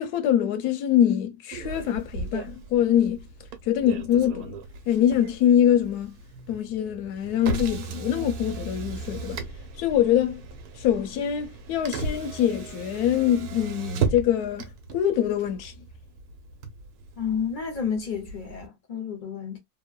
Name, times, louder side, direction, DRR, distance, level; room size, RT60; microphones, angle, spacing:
voice 1, 0.0-3.2 3.6-4.6 4.9-6.2 6.5-9.4 9.8-10.4 10.8-15.7, left 10 dB, 80° left, 1.1 m, -24 dB
Motor vehicle (road), 1.5-18.7, right 4 dB, 75° right, 1.1 m, -36 dB
voice 2, 17.2-19.6, left 7 dB, 45° left, 0.7 m, -30 dB
3.0 x 2.1 x 2.2 m
omnidirectional pair, 1.7 m